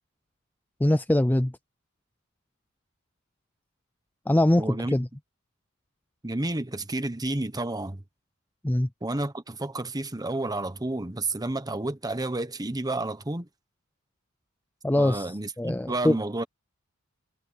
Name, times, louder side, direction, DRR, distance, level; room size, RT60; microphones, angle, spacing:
voice 1, 0.8-1.5 4.3-5.1 8.6-8.9 14.8-16.2, left 1 dB, 10° left, 0.4 m, -23 dB
voice 2, 4.6-4.9 6.2-8.0 9.0-13.5 15.0-16.4, right 2 dB, 20° right, 1.2 m, -31 dB
head